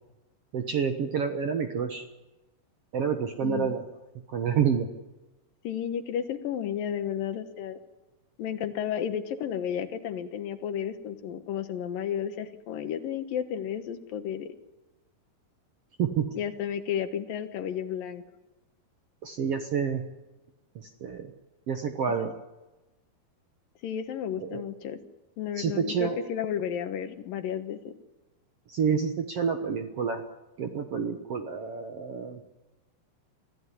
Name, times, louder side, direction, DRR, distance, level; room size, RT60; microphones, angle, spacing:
voice 1, 0.5-2.0 2.9-3.8 4.3-4.9 16.0-16.3 19.2-20.0 20.7-21.3 21.7-22.3 24.4-24.6 25.6-26.2 28.7-30.2 30.6-32.4, right 7 dB, 60° right, 6 dB, 1.7 m, -28 dB
voice 2, 3.4-3.7 5.6-7.8 8.4-14.5 16.3-18.2 22.2-22.3 23.8-25.0 25.4-27.9, left 9 dB, 70° left, 9 dB, 2.9 m, -32 dB
24.5 x 16.0 x 9.8 m, 1.1 s
omnidirectional pair, 4.2 m